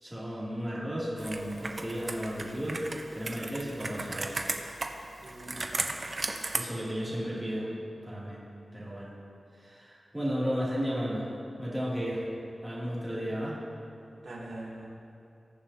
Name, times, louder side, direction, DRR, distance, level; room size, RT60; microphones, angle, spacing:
voice 1, 0.0-2.8 3.1-4.4 6.5-7.7 8.0-8.4 8.7-9.1 9.6-11.3 11.6-12.2 12.6-13.6, equal, 10° right, -8 dB, 2.5 m, -33 dB
Computer keyboard, 1.2-6.6, right 2 dB, 45° right, 0.7 m, -36 dB
voice 2, 5.2-6.1 7.0-7.1 13.1-13.4 14.2-14.9, right 1 dB, 70° right, -7 dB, 2.4 m, -44 dB
20.0 x 7.0 x 2.8 m, 2.7 s
wide cardioid pair, 115°, 0 cm